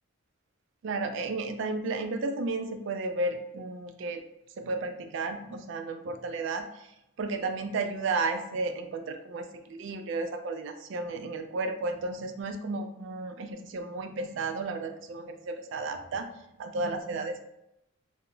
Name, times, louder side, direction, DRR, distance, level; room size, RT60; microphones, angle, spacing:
voice 1, 0.8-4.3 4.6-16.3 16.6-17.4, right 3 dB, 60° right, 7 dB, 0.3 m, -33 dB
2.2 x 2.0 x 3.7 m, 0.83 s
head